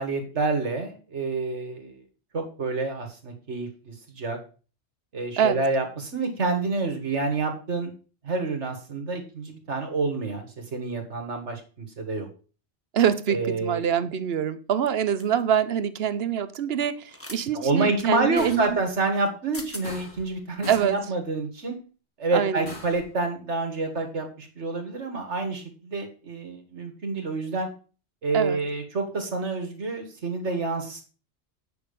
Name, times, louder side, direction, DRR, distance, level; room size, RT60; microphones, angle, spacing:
voice 1, 0.0-2.0 2.3-4.4 5.1-7.9 8.2-12.3 13.3-13.9 17.5-21.8 22.2-27.7 28.2-31.1, right 3 dB, 90° right, 5 dB, 2.1 m, -28 dB
voice 2, 12.9-18.8 20.7-21.0 22.3-22.7 28.3-28.6, right 8 dB, 65° right, 14 dB, 1.0 m, -25 dB
sound 1, 15.2-15.4 17.1-17.4 18.0-18.1 19.2-19.3 19.5-19.9, left 1 dB, 10° left, 1.1 m, -40 dB
sound 2, 18.4-18.8 19.8-20.4 20.6-21.0 22.6-23.1, left 2 dB, 45° left, 3.1 m, -41 dB
8.5 x 6.1 x 5.3 m, 0.37 s
omnidirectional pair, 1.2 m